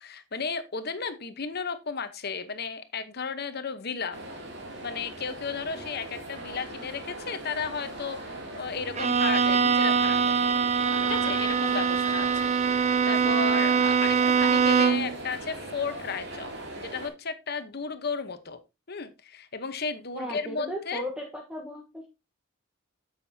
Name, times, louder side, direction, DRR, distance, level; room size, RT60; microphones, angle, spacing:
voice 1, 0.0-4.2 4.8-10.4 11.1-16.5 16.8-18.6 18.9-21.0, left 5 dB, 50° left, 11 dB, 1.0 m, -34 dB
sound 1, 4.1-17.1, right 1 dB, 55° right, 2.8 m, -39 dB
Bowed string instrument, 8.9-15.2, right 6 dB, 35° right, 0.6 m, -23 dB
voice 2, 20.1-22.1, equal, 5° right, 0 dB, 1.1 m, -36 dB
9.0 x 7.5 x 2.8 m, 0.25 s
head